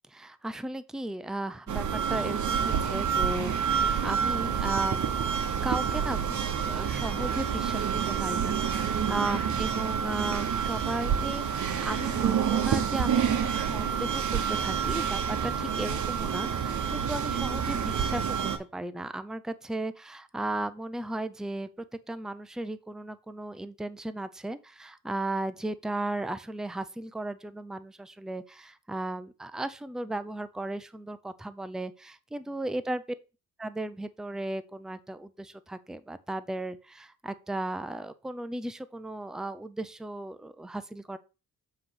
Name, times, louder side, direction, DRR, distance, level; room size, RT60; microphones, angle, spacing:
voice 1, 0.1-5.1 5.6-6.4 6.6-21.7 22.1-33.0 33.6-41.2, right 1 dB, ahead, 12 dB, 0.5 m, -36 dB
sound 1, 1.7-18.6, right 7 dB, 55° right, 1.2 m, -28 dB
7.5 x 3.2 x 5.7 m, 0.31 s
cardioid pair, 85°, 34 cm